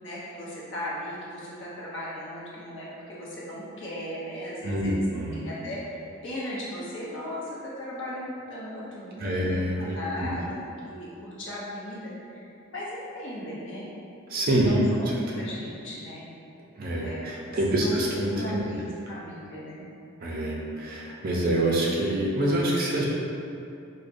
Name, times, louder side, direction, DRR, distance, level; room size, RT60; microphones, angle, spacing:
voice 1, 0.0-5.0 5.3-5.8 6.2-10.5 10.8-13.9 14.5-15.1 15.4-16.3 17.0-17.2 17.7-18.0 18.3-19.8, left 1 dB, 60° left, -7 dB, 0.8 m, -37 dB
voice 2, 4.6-5.5 9.2-10.3 14.3-14.9 15.3-15.5 16.8-18.8 20.2-23.1, right 1 dB, 45° right, -4 dB, 0.4 m, -26 dB
4.7 x 2.1 x 2.5 m, 2.7 s
head